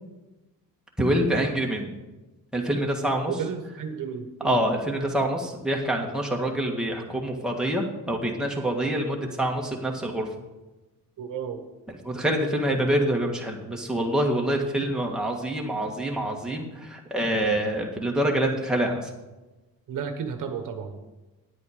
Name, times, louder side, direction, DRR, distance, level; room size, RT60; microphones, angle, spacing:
voice 1, 1.0-1.8 2.5-3.3 4.4-10.3 11.9-19.1, right 1 dB, ahead, -1 dB, 1.7 m, -26 dB
voice 2, 3.3-4.6 11.2-11.6 19.9-21.0, right 7 dB, 60° right, 7 dB, 1.1 m, -32 dB
9.7 x 8.4 x 5.1 m, 1.1 s
cardioid pair, 105°, 35 cm